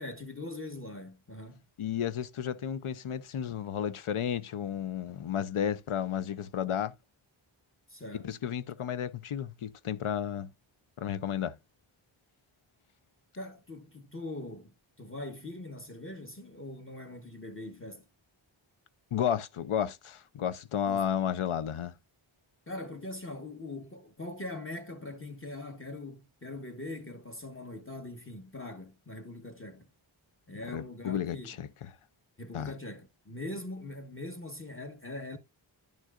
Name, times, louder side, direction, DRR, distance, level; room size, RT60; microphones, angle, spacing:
voice 1, 0.0-1.6 7.9-8.3 8.8-8.9 13.3-18.0 20.9-21.1 22.7-29.9 30.5-31.6 32.4-35.4, left 2 dB, 25° left, 1.2 m, -42 dB
voice 2, 1.8-6.9 8.1-10.5 11.0-11.6 19.1-21.9 30.7-31.7 32.5-32.7, left 9 dB, 85° left, 0.7 m, -32 dB
10.5 x 6.3 x 2.4 m
wide cardioid pair, 70°, 48 cm